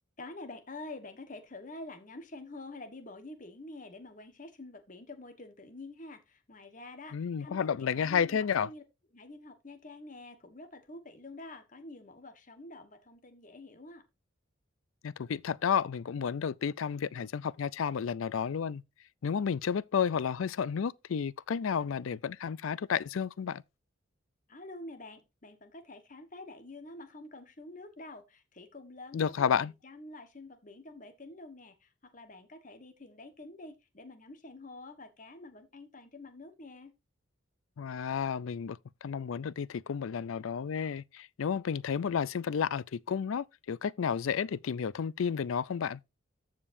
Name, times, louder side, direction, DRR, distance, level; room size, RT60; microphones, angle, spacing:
voice 1, 0.2-8.8 9.1-14.0 24.5-36.9, left 2 dB, 40° left, 1.3 m, -47 dB
voice 2, 7.1-8.7 15.0-18.8 19.2-23.6 29.1-29.7 37.8-46.0, left 7 dB, 80° left, 0.4 m, -31 dB
14.5 x 5.1 x 2.6 m
head